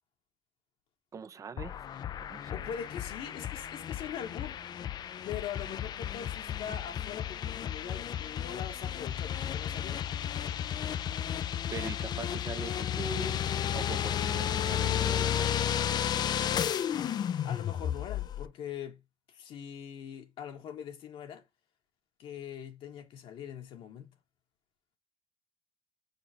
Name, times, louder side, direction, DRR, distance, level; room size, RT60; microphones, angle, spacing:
voice 1, 1.1-1.8 2.2-2.7 11.7-13.4 13.7-15.6, right 6 dB, 40° right, 0.6 m, -42 dB
sound 1, 1.6-18.5, left 10 dB, 50° left, 0.4 m, -33 dB
voice 2, 2.5-4.7 5.2-10.0 17.4-19.0 19.3-21.4 22.2-24.1, left 8 dB, 80° left, 1.6 m, -42 dB
8.7 x 4.2 x 3.0 m
cardioid pair, 110°, 9 cm